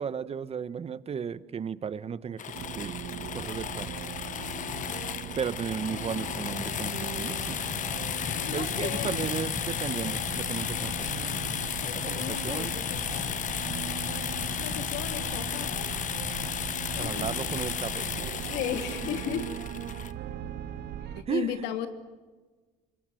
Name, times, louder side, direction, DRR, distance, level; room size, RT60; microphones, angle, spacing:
voice 1, 0.0-2.9 3.3-3.9 5.4-7.6 8.5-11.3 12.0-12.8 17.0-18.4 21.3-21.7, right 7 dB, 35° right, 15 dB, 1.1 m, -35 dB
sound 1, 2.4-20.1, left 9 dB, 50° left, 1.3 m, -34 dB
sound 2, 2.5-21.2, right 10 dB, 70° right, 1.6 m, -39 dB
voice 2, 8.3-9.1 11.8-13.4 14.6-15.9 16.9-17.4 18.5-19.5 21.0-21.9, left 10 dB, 90° left, 7 dB, 2.7 m, -36 dB
27.0 x 22.0 x 7.8 m, 1.3 s
cardioid pair, 110°, 17 cm